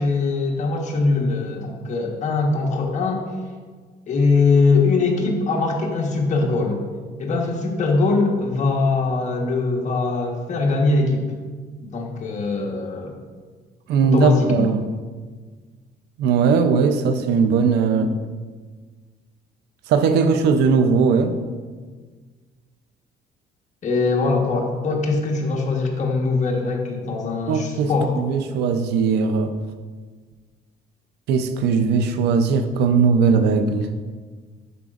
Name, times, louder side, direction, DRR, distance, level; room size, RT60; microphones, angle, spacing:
voice 1, 0.0-3.2 4.1-6.8 7.2-11.2 11.8-13.1 14.0-14.7 23.8-28.2, left 3 dB, 45° left, 1 dB, 1.3 m, -21 dB
voice 2, 13.9-14.8 16.2-18.1 19.9-21.4 27.5-29.5 31.3-33.9, right 5 dB, 80° right, 9 dB, 0.6 m, -19 dB
11.0 x 4.9 x 2.5 m, 1.5 s
cardioid pair, 110°, 17 cm